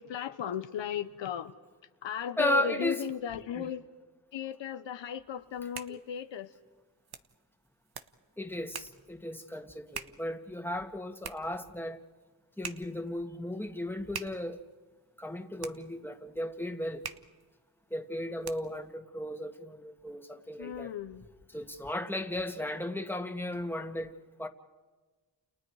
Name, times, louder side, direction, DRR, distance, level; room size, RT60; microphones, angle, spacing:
voice 1, 0.0-1.5 2.0-3.8 4.3-6.5 20.6-21.2, left 9 dB, 75° left, 1.0 m, -36 dB
voice 2, 2.4-3.1 3.6-3.7 5.9-6.0 8.4-12.0 12.6-14.6 15.2-17.0 17.9-20.9 21.5-24.1 24.4-24.5, left 1 dB, 5° left, 2.1 m, -35 dB
sound 1, 5.4-18.9, right 6 dB, 55° right, 1.4 m, -47 dB
30.0 x 29.0 x 4.9 m
cardioid pair, 55°, 44 cm